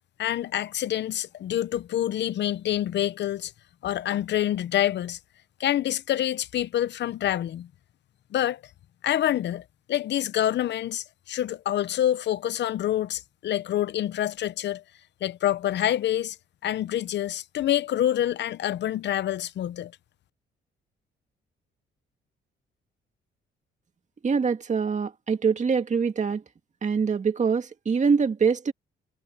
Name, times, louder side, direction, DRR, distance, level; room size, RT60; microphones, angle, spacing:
voice 1, 0.2-3.5 3.8-5.2 5.6-7.7 8.3-8.6 9.0-14.8 15.2-16.4 16.6-19.9, left 12 dB, 60° left, 0.7 m, -27 dB
voice 2, 24.2-26.4 26.8-28.7, right 5 dB, 35° right, 2.0 m, -24 dB
cardioid pair, 90°, 20 cm